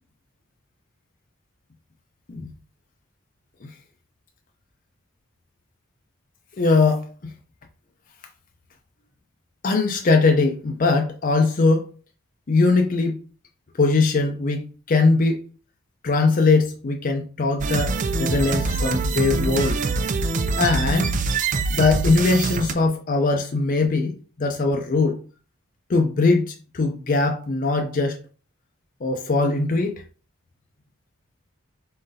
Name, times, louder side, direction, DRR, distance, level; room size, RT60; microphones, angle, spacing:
voice 1, 6.6-7.1 9.6-11.8 12.5-13.2 13.8-15.4 16.0-19.8 20.6-21.2 21.7-25.2 25.9-28.2 29.0-29.9, left 3 dB, 40° left, 0.5 m, -21 dB
sound 1, 17.6-22.7, right 4 dB, 40° right, 0.3 m, -24 dB
4.2 x 3.8 x 2.7 m
head